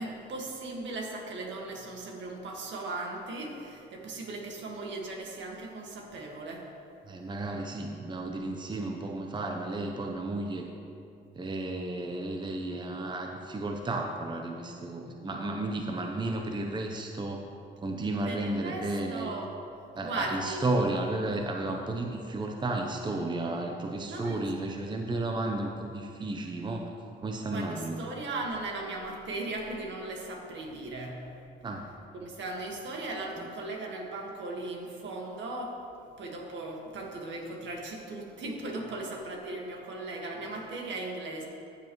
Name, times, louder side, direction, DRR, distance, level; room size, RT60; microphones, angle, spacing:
voice 1, 0.0-6.7 18.3-19.5 20.0-20.8 24.1-24.5 27.5-31.4 32.1-35.8 36.2-41.4, right 2 dB, 70° right, 0 dB, 1.8 m, -37 dB
voice 2, 7.1-10.7 11.4-17.4 17.8-19.3 19.9-26.9 27.2-28.0 31.6-31.8, right 2 dB, 25° right, 2 dB, 0.7 m, -33 dB
14.0 x 7.3 x 3.1 m, 2.6 s
cardioid pair, 90°, 20 cm